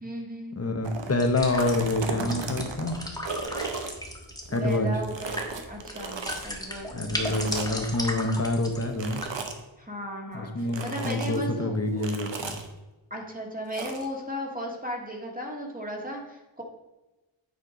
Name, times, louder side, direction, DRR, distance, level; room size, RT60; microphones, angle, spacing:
voice 1, 0.0-0.6 4.5-7.5 9.8-12.1 13.1-16.6, equal, 15° right, 0 dB, 1.7 m, -36 dB
voice 2, 0.6-2.9 4.5-4.9 6.9-9.2 10.3-12.6, left 2 dB, 30° left, 6 dB, 1.0 m, -27 dB
sound 1, 0.8-1.1 1.5-4.8 5.0-6.5 7.2-7.9 8.9-9.6 10.7-11.4 12.0-12.7 13.7-14.1, right 4 dB, 60° right, 1.1 m, -35 dB
sound 2, 1.2-9.3, left 1 dB, 5° left, 1.4 m, -37 dB
9.4 x 4.5 x 5.0 m, 1.1 s
wide cardioid pair, 95°, 48 cm